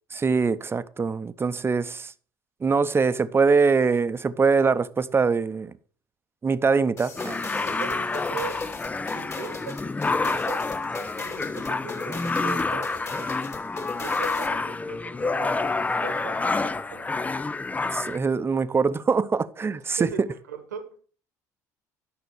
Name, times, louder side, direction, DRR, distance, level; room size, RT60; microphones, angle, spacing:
voice 1, 0.1-2.1 2.6-5.7 6.4-7.4 17.9-20.1, right 4 dB, 25° right, 0.8 m, -23 dB
sound 1, 7.0-14.6, left 3 dB, 30° left, 2.5 m, -37 dB
sound 2, 7.2-18.2, left 3 dB, 15° left, 0.5 m, -28 dB
voice 2, 7.6-8.6 9.1-9.8 10.1-17.2 20.0-21.0, right 7 dB, 90° right, 1.5 m, -40 dB
11.5 x 6.0 x 6.2 m
hypercardioid pair, 65°, 9 cm